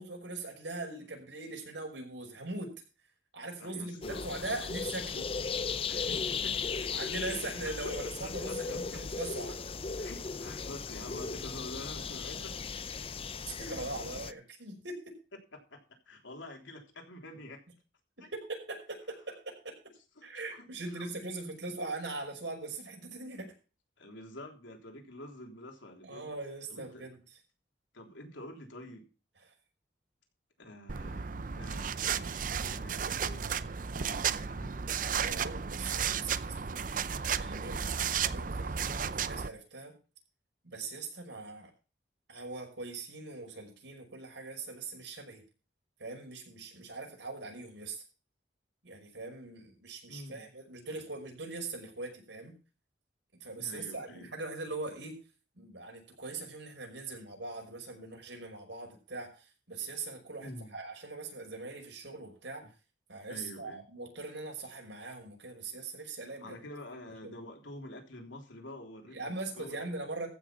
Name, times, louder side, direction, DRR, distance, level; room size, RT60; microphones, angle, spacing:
voice 1, 0.0-2.7 3.3-5.3 6.9-9.6 13.5-15.1 18.3-19.7 20.2-23.5 26.0-27.2 35.0-36.8 37.4-39.9 40.6-41.7 42.3-45.4 46.0-48.0 48.8-52.6 53.4-55.2 55.6-62.7 63.1-66.6 67.2-67.3 69.1-70.3, right 3 dB, 75° right, 2 dB, 5.6 m, -41 dB
voice 2, 3.6-4.5 5.9-6.9 8.2-9.0 10.0-12.8 15.5-17.6 18.2-18.3 20.2-21.1 24.0-26.3 26.7-27.0 27.9-29.1 30.6-34.8 50.1-50.5 53.6-54.3 60.4-60.7 62.6-62.7 63.3-63.8 66.4-69.9, left 1 dB, 90° left, 3 dB, 3.4 m, -48 dB
sound 1, 4.0-14.3, left 5 dB, 30° left, 0.5 m, -37 dB
sound 2, 30.9-39.5, right 7 dB, 45° right, 0.6 m, -33 dB
15.0 x 6.5 x 5.7 m, 0.33 s
head